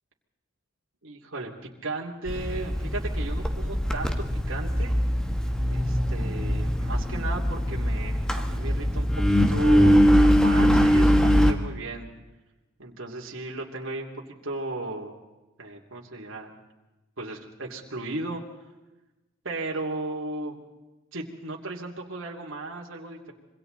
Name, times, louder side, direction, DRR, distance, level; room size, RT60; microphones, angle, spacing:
voice 1, 1.0-1.5 1.8-5.0 5.7-9.2 9.5-12.1 12.8-14.1 14.4-15.2 15.6-16.5 17.2-18.4 19.4-20.6 21.1-23.3, right 2 dB, 65° right, -1 dB, 2.9 m, -35 dB
Engine, 2.3-11.5, equal, 5° left, 1.5 m, -22 dB
27.0 x 24.5 x 4.0 m, 1.1 s
head